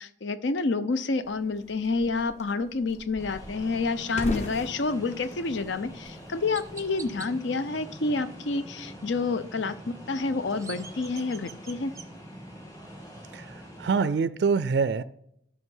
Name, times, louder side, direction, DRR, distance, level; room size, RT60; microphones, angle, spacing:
voice 1, 0.0-11.9, left 3 dB, 70° left, 0.6 m, -29 dB
sound 1, 1.2-7.2, left 1 dB, 35° left, 1.1 m, -40 dB
sound 2, 3.2-14.1, equal, 20° left, 2.0 m, -45 dB
Chirp tweet, 5.6-5.8 6.5-7.3 10.2-12.1, right 5 dB, 15° right, 0.7 m, -45 dB
voice 2, 13.3-15.0, right 5 dB, 60° right, 0.3 m, -25 dB
11.0 x 6.1 x 5.5 m
head